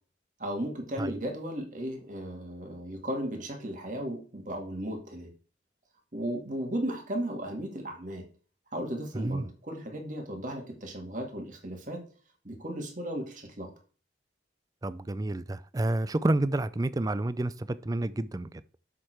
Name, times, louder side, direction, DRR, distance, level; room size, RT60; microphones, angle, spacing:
voice 1, 0.4-5.3 6.1-8.2 8.7-12.0 12.4-13.7, right 1 dB, 45° right, 2.2 m, -35 dB
voice 2, 9.1-9.5 14.8-18.5, right 2 dB, 20° right, 0.4 m, -29 dB
7.4 x 6.6 x 4.5 m
head